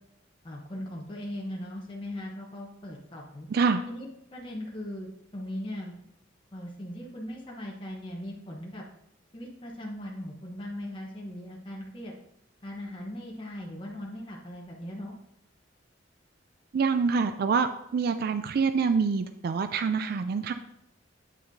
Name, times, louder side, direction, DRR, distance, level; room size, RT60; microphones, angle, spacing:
voice 1, 0.4-3.5 3.9-5.9 6.5-8.8 9.3-12.1 12.6-15.1, left 1 dB, 25° left, -2 dB, 0.9 m, -39 dB
voice 2, 3.5-3.8 16.7-20.5, right 5 dB, 55° right, 9 dB, 0.3 m, -26 dB
8.4 x 5.8 x 2.7 m, 0.83 s
head